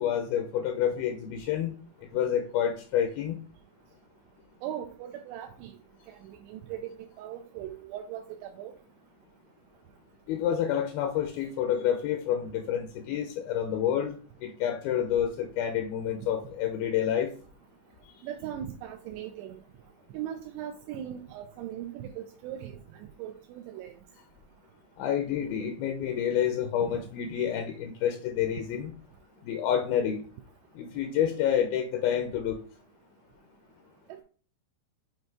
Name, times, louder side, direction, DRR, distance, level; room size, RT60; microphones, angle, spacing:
voice 1, 0.0-1.7 2.1-3.4 10.3-14.2 14.4-17.3 25.0-28.9 29.4-30.2 30.8-32.6, left 9 dB, 80° left, 2.2 m, -28 dB
voice 2, 4.6-5.7 6.1-6.9 7.2-8.7 13.6-13.7 18.2-19.6 20.1-23.9 26.8-26.9 34.1-34.2, right 10 dB, 85° right, 2.6 m, -39 dB
7.8 x 2.7 x 4.6 m
omnidirectional pair, 4.9 m